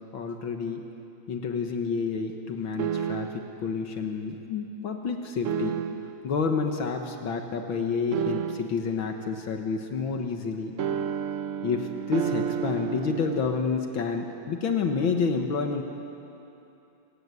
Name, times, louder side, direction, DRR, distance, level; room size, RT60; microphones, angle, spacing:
voice 1, 0.1-0.8 1.3-5.8 6.2-10.8 11.6-15.8, left 5 dB, 75° left, 4 dB, 2.1 m, -29 dB
sound 1, 2.8-3.6 5.4-6.3 8.1-9.0 10.8-13.5, right 8 dB, 75° right, 0.7 m, -31 dB
26.0 x 17.5 x 9.6 m, 2.8 s
omnidirectional pair, 2.2 m